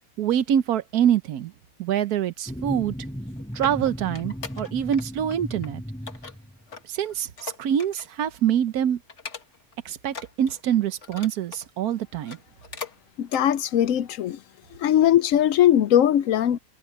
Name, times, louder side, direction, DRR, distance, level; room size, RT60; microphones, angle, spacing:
voice 1, 0.2-1.5 1.8-2.9 3.5-5.8 6.9-9.0 9.8-12.4, right 9 dB, 90° right, 1.4 m, -25 dB
sound 1, 2.5-6.8, equal, 5° left, 6.7 m, -36 dB
sound 2, 3.1-5.0 5.3-5.7 6.1-8.2 8.5-8.7 9.1-9.7 10.1-11.7 12.1-13.0 13.3-13.5 14.0-14.1, left 5 dB, 55° left, 2.1 m, -40 dB
voice 2, 13.2-14.4 14.7-16.6, left 11 dB, 70° left, 1.0 m, -20 dB
omnidirectional pair, 1.6 m